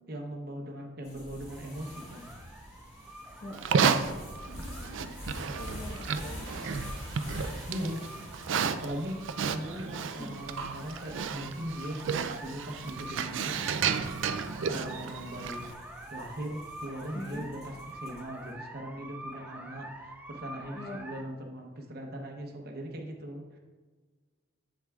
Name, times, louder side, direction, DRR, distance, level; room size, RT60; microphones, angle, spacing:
voice 1, 0.1-2.3 5.5-5.6 6.5-6.8 7.7-8.0 8.7-9.2 9.5-12.0 12.4-13.6 14.6-15.7 16.1-23.6, right 1 dB, 50° right, 2 dB, 0.8 m, -39 dB
sound 1, 1.0-18.4, equal, 35° left, 2.0 m, -47 dB
sound 2, 1.5-21.2, right 1 dB, 10° right, 0.4 m, -47 dB
Livestock farm animals working animals, 3.5-15.7, right 6 dB, 75° right, 0.4 m, -32 dB
voice 2, 4.5-5.2 5.5-6.6 10.1-10.4 17.1-17.5 20.7-21.1, left 1 dB, 55° left, -2 dB, 1.1 m, -43 dB
7.6 x 7.2 x 2.4 m, 1.4 s
head